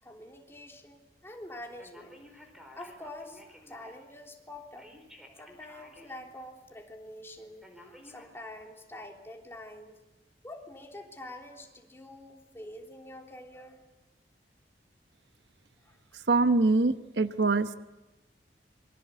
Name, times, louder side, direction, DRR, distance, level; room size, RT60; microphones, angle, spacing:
voice 1, 0.0-2.2 2.7-4.9 5.3-10.0 10.4-13.8 15.8-16.1, left 1 dB, 15° left, 1 dB, 3.4 m, -46 dB
Telephone, 1.8-4.1 4.8-6.3 6.7-6.8 7.6-8.3, left 1 dB, 5° right, 4.6 m, -53 dB
voice 2, 16.3-17.7, right 3 dB, 75° right, 10 dB, 1.0 m, -24 dB
27.5 x 24.5 x 8.3 m, 1.0 s
head